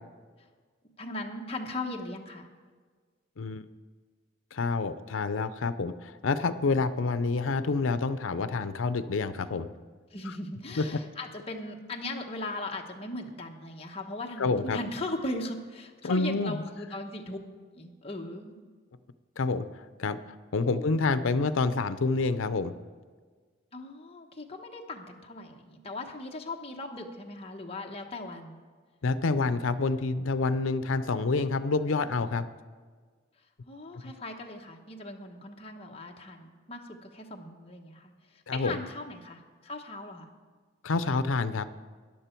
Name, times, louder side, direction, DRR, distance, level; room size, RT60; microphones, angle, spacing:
voice 1, 1.0-2.5 10.1-17.4 17.7-18.6 20.7-21.0 23.7-28.6 33.7-40.3, left 2 dB, 30° left, 1 dB, 1.1 m, -38 dB
voice 2, 3.4-3.7 4.5-9.7 14.4-14.8 16.0-16.6 19.4-19.7 20.0-20.2 20.5-22.7 29.0-32.5 34.0-34.1 38.5-38.8 40.8-41.7, left 3 dB, 80° left, 12 dB, 0.6 m, -28 dB
13.5 x 10.0 x 4.5 m, 1.5 s
head